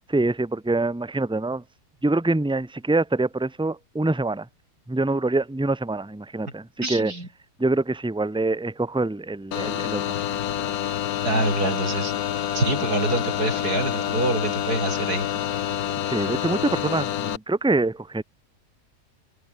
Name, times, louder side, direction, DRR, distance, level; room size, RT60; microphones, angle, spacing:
voice 1, 0.1-1.6 2.0-4.5 4.9-7.1 7.6-10.2 16.1-18.2, right 2 dB, 5° right, 1.1 m, -25 dB
voice 2, 6.8-7.3 11.2-12.1 12.5-15.3, right 2 dB, 70° right, 7.1 m, -25 dB
sound 1, 9.5-17.4, left 11 dB, 65° left, 1.3 m, -27 dB
open air
omnidirectional pair, 1.7 m